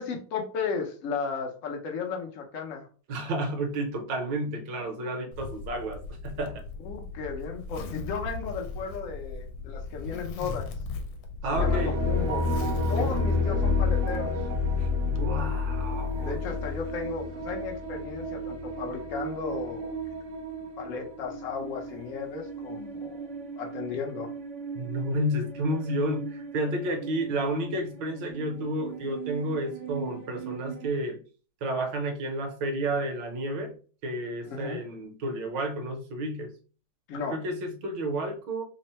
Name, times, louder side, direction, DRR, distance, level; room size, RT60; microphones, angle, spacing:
voice 1, 0.0-2.9 6.8-10.7 11.5-12.4 12.9-14.3 16.2-19.9 20.8-23.3 23.6-24.3 34.4-34.8 37.1-37.4, left 5 dB, 65° left, 2 dB, 0.8 m, -35 dB
voice 2, 3.1-6.6 11.4-12.0 13.0-13.7 14.8-16.4 24.7-31.2 31.6-33.7 34.0-36.5 37.3-38.6, right 1 dB, 65° right, 3 dB, 1.5 m, -31 dB
Zipper (clothing), 5.3-15.2, left 3 dB, 80° left, 1.5 m, -38 dB
sound 1, 11.5-30.9, left 2 dB, 85° right, 0.6 m, -31 dB
3.6 x 2.1 x 4.2 m, 0.39 s
omnidirectional pair, 2.3 m